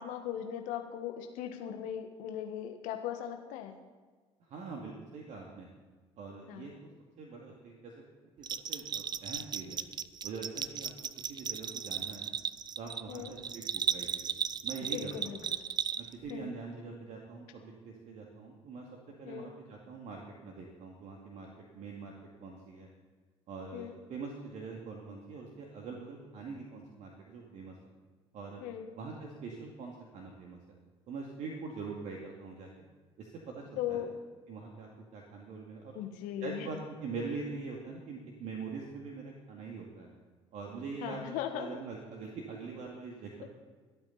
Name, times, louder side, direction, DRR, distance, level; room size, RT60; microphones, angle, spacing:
voice 1, 0.0-3.7 6.5-6.7 13.1-13.3 14.9-15.6 16.3-16.5 19.2-19.5 23.7-23.9 28.6-28.9 33.8-34.1 35.9-36.7 41.0-41.7, left 10 dB, 60° left, 6 dB, 1.6 m, -38 dB
voice 2, 4.4-5.7 6.2-6.7 7.2-7.9 8.4-9.8 10.2-10.9 11.3-12.3 12.8-14.3 14.6-15.3 16.0-18.9 19.2-22.9 23.5-27.9 28.3-28.6 29.0-30.7 31.1-32.7 33.2-34.1 34.5-36.0 36.4-40.1 40.5-43.5, right 4 dB, 50° right, 0 dB, 2.2 m, -43 dB
Bell, 8.4-16.3, right 7 dB, 30° right, 0.5 m, -36 dB
25.0 x 8.8 x 4.2 m, 1.4 s
figure-of-eight pair, 55°, 15 cm